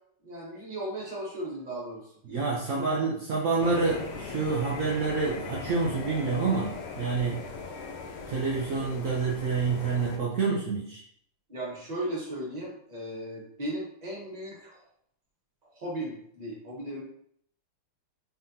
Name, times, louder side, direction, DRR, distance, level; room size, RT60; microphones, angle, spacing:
voice 1, 0.2-2.1 2.7-2.9 11.5-14.8 15.7-17.0, right 1 dB, 25° right, -4 dB, 1.0 m, -36 dB
voice 2, 2.3-7.4 8.3-11.0, right 4 dB, 70° right, -4 dB, 0.7 m, -28 dB
sound 1, 3.6-10.2, left 4 dB, 90° left, 1.5 m, -39 dB
4.1 x 3.5 x 2.7 m, 0.65 s
omnidirectional pair, 2.3 m